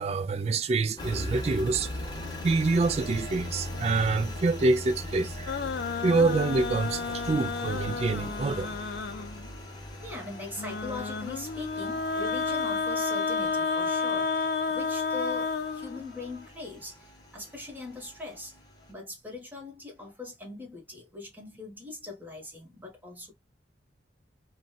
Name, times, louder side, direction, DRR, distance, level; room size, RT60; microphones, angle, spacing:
voice 1, 0.0-1.9 2.4-5.6 5.9-8.7, right 3 dB, 35° right, 0.3 m, -26 dB
Engine, 1.0-18.9, left 1 dB, 20° left, 0.9 m, -40 dB
sound 1, 5.5-9.5 10.6-16.4, left 4 dB, 60° left, 0.4 m, -31 dB
voice 2, 10.0-18.6 18.9-23.3, left 3 dB, 10° right, 1.2 m, -41 dB
3.9 x 2.2 x 2.3 m
head